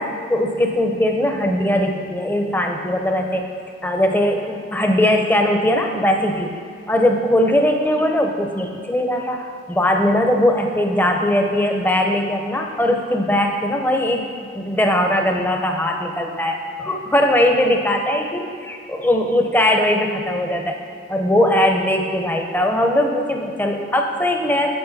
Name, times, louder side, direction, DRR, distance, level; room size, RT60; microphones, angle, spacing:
voice 1, 0.0-3.5 3.8-6.5 6.9-14.3 14.5-20.8 21.1-24.7, left 1 dB, 10° left, 3 dB, 0.6 m, -20 dB
9.0 x 7.5 x 4.1 m, 2.5 s
head